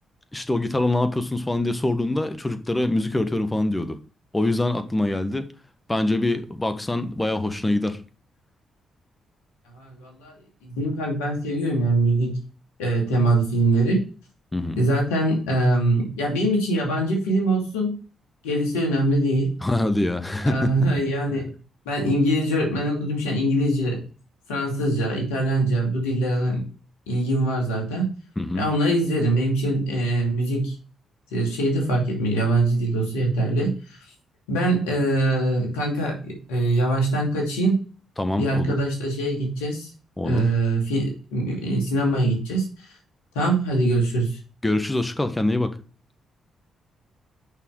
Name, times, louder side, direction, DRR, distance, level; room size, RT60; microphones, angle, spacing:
voice 1, 0.3-4.0 4.3-5.5 5.9-8.0 14.5-14.8 19.6-20.7 28.4-28.7 38.2-38.7 40.2-40.5 44.6-45.8, left 2 dB, 20° left, 1.5 m, -24 dB
voice 2, 9.7-10.3 10.6-12.4 12.8-14.0 14.8-18.0 18.4-19.5 20.5-21.5 21.9-24.0 24.5-26.6 27.1-28.1 28.5-30.7 31.3-33.7 34.5-37.8 38.4-39.9 40.2-42.7 43.3-44.4, right 1 dB, 90° left, 2.5 m, -23 dB
6.5 x 5.7 x 4.8 m
hypercardioid pair, 45°, 0 cm